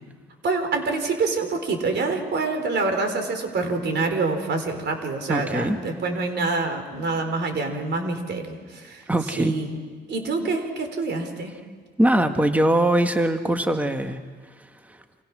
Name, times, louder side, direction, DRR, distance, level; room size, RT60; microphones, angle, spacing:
voice 1, 0.4-9.0 9.4-9.8 10.1-11.6, right 3 dB, 60° right, 6 dB, 4.4 m, -26 dB
voice 2, 5.3-5.8 9.1-9.5 12.0-14.2 14.9-15.0, right 1 dB, 5° right, 6 dB, 1.6 m, -22 dB
29.5 x 26.0 x 6.2 m, 1.5 s
cardioid pair, 90°, 20 cm